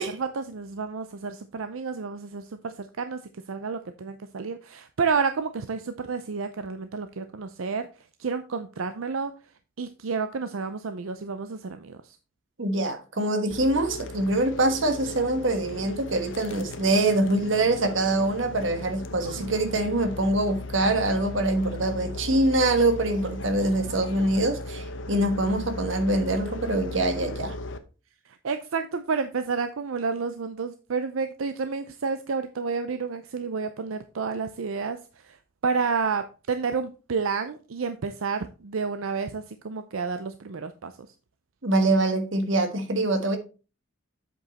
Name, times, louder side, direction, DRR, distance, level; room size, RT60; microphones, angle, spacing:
voice 1, 0.0-3.2 3.5-9.3 9.8-12.2 19.4-19.5 28.2-41.1, right 5 dB, 85° right, 0.6 m, -30 dB
voice 2, 12.6-27.5 41.6-43.4, right 2 dB, 65° right, 1.3 m, -24 dB
sound 1, 13.5-27.8, left 2 dB, 65° left, 0.8 m, -37 dB
7.8 x 5.3 x 4.1 m
head